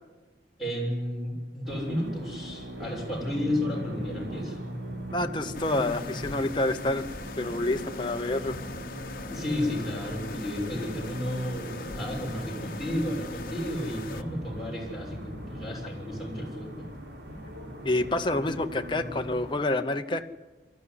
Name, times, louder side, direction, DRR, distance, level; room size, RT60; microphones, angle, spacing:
voice 1, 0.6-4.6 9.3-16.9, left 1 dB, ahead, -3 dB, 6.8 m, -32 dB
sound 1, 1.6-19.5, equal, 75° right, 3.7 m, -39 dB
voice 2, 5.1-7.0 7.4-8.5 17.8-20.3, left 2 dB, 25° left, 5 dB, 0.8 m, -28 dB
sound 2, 5.5-14.2, left 3 dB, 50° left, 1.2 m, -41 dB
23.0 x 14.0 x 9.8 m, 1.3 s
head